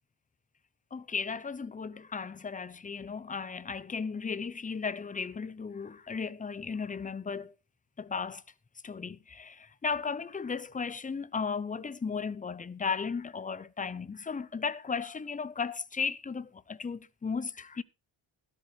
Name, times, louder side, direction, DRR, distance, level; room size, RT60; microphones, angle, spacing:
voice 1, 0.9-7.5 8.0-8.4 8.8-17.8, left 5 dB, 15° left, 0.6 m, -35 dB
13.5 x 13.0 x 3.3 m
wide cardioid pair, 150°, 47 cm